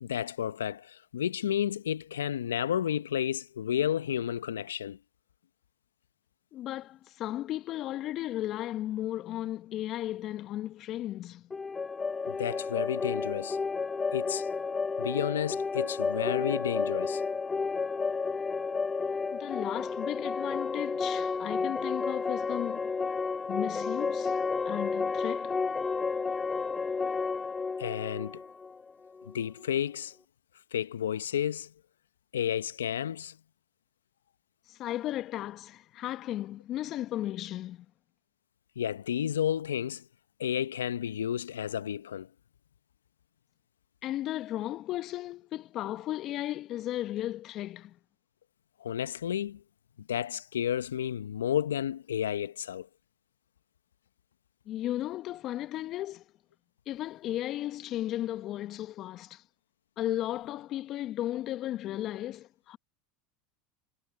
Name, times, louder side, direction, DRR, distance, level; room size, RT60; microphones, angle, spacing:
voice 1, 0.0-5.0 12.3-13.6 14.1-14.5 15.0-17.2 27.8-28.4 29.3-30.2 30.7-31.7 32.3-33.4 38.8-40.0 40.4-42.3 48.8-49.6 50.0-52.9, left 9 dB, 85° left, 0.9 m, -31 dB
voice 2, 6.5-11.5 19.3-22.9 23.5-24.4 24.6-25.6 34.7-37.9 44.0-48.0 54.7-56.2 56.9-59.4 60.0-62.8, left 13 dB, 50° left, 1.4 m, -35 dB
sound 1, 11.5-29.3, left 4 dB, 20° left, 1.5 m, -31 dB
hypercardioid pair, 85°, 0 cm